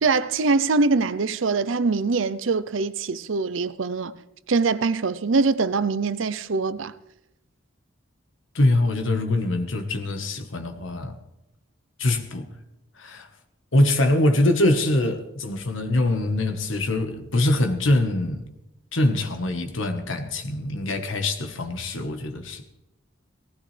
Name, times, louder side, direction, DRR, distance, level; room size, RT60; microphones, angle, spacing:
voice 1, 0.0-4.2 4.5-6.9, right 4 dB, 75° right, 0.6 m, -23 dB
voice 2, 8.5-11.2 12.0-12.5 13.0-13.3 13.7-18.5 18.9-22.6, left 1 dB, 80° left, 1.3 m, -23 dB
18.5 x 15.5 x 3.3 m
head